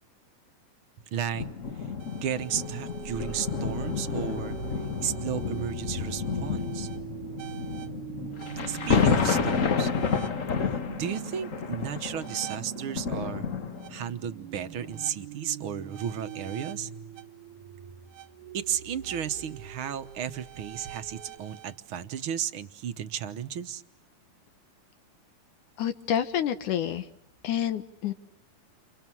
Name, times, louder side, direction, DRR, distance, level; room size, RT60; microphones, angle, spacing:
voice 1, 1.1-1.5 1.8-1.9 2.1-4.6 5.0-6.9 8.7-9.9 10.7-13.5 13.9-16.9 18.5-23.8, right 9 dB, 55° right, 10 dB, 1.6 m, -34 dB
sound 1, 1.3-14.1 14.8-15.0, left 6 dB, 60° left, 0.8 m, -30 dB
sound 2, 2.0-21.7, right 9 dB, 90° right, 2.9 m, -42 dB
voice 2, 25.8-27.1 27.4-28.1, left 10 dB, 80° left, 8 dB, 2.7 m, -28 dB
30.0 x 30.0 x 6.2 m, 0.78 s
omnidirectional pair, 3.5 m